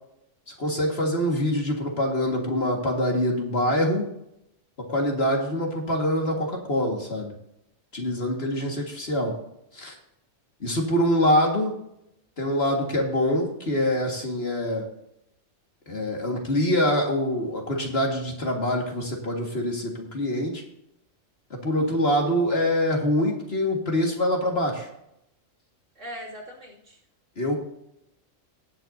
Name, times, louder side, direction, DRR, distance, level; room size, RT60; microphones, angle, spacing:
voice 1, 0.5-4.1 4.8-7.3 7.9-9.4 9.7-9.9 10.6-11.7 12.4-14.9 15.9-20.6 21.5-24.9 27.4-27.6, left 1 dB, 50° left, 1 dB, 2.1 m, -25 dB
voice 2, 26.0-27.0, equal, 65° right, -3 dB, 2.9 m, -40 dB
17.5 x 7.9 x 2.7 m, 0.79 s
omnidirectional pair, 1.4 m